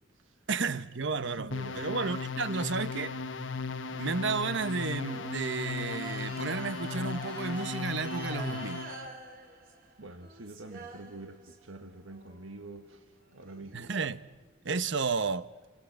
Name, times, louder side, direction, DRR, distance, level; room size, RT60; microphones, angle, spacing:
voice 1, 0.5-1.5 1.7-3.2 3.9-8.8 13.7-14.2 14.6-15.5, right 4 dB, 65° right, 1.0 m, -32 dB
sound 1, 0.8-8.5, equal, 35° left, 1.4 m, -53 dB
voice 2, 1.2-1.9 10.0-13.9, right 2 dB, 90° right, 1.5 m, -46 dB
sound 2, 1.5-9.1, left 4 dB, 70° left, 1.1 m, -37 dB
sound 3, 3.9-11.7 12.1-14.7, right 2 dB, 50° right, 4.5 m, -47 dB
29.0 x 25.0 x 7.9 m
head